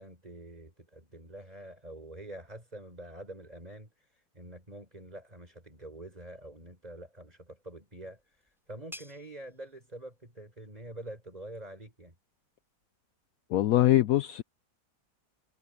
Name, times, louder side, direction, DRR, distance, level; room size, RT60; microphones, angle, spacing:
voice 1, 0.0-3.9 4.3-8.2 8.7-12.1, right 1 dB, 20° right, 5.1 m, -46 dB
sound 1, 7.6-13.0, equal, ahead, 5.5 m, -56 dB
voice 2, 13.5-14.4, left 14 dB, 80° left, 0.8 m, -23 dB
omnidirectional pair, 2.0 m